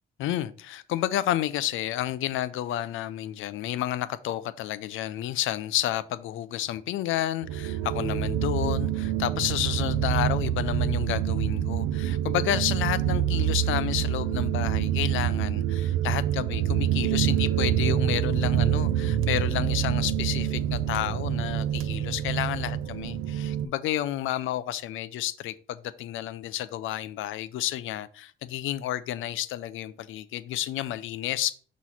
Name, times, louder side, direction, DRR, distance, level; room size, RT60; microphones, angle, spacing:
voice 1, 0.2-31.5, left 13 dB, 80° left, 0.5 m, -30 dB
sound 1, 7.4-23.6, right 10 dB, 90° right, 0.5 m, -26 dB
6.1 x 3.1 x 5.6 m
cardioid pair, 90°, 20 cm